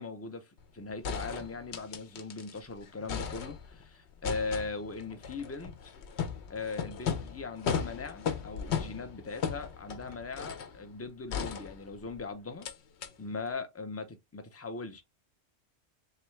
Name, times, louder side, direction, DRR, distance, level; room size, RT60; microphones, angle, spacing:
voice 1, 0.0-5.9 6.5-12.7 13.2-15.0, left 4 dB, 25° left, 0.3 m, -39 dB
sound 1, 0.6-0.7 1.0-2.6 2.9-3.8 4.2-10.8 11.3-12.2 12.6-12.7 13.0-13.1, left 7 dB, 75° left, 0.9 m, -36 dB
3.4 x 3.3 x 3.1 m
omnidirectional pair, 1.2 m